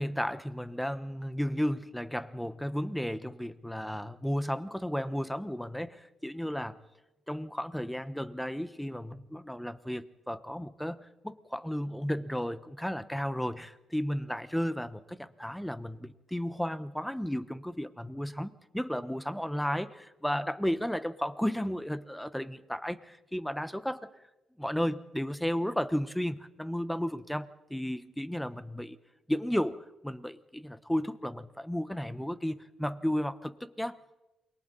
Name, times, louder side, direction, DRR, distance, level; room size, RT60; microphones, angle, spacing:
voice 1, 0.0-6.8 7.3-24.1 24.6-29.0 29.3-34.0, equal, 5° left, 13 dB, 1.1 m, -33 dB
28.5 x 23.0 x 4.1 m, 0.99 s
cardioid pair, 90°, 0 cm